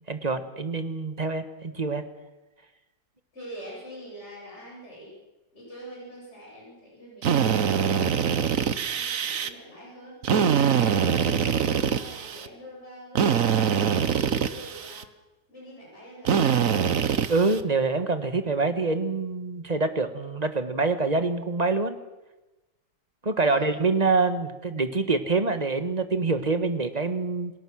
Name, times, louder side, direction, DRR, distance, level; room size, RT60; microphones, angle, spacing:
voice 1, 0.1-2.0 17.3-22.0 23.2-27.5, right 3 dB, 25° right, 10 dB, 1.4 m, -25 dB
voice 2, 3.3-5.1 5.5-7.3 8.3-15.1 15.5-16.8 23.4-23.7, equal, 40° left, -4 dB, 8.4 m, -45 dB
Drill, 7.2-9.5 10.2-12.5 13.2-15.0 16.2-17.6, right 7 dB, 55° right, 1.3 m, -24 dB
28.5 x 20.0 x 6.3 m, 1.1 s
omnidirectional pair, 1.9 m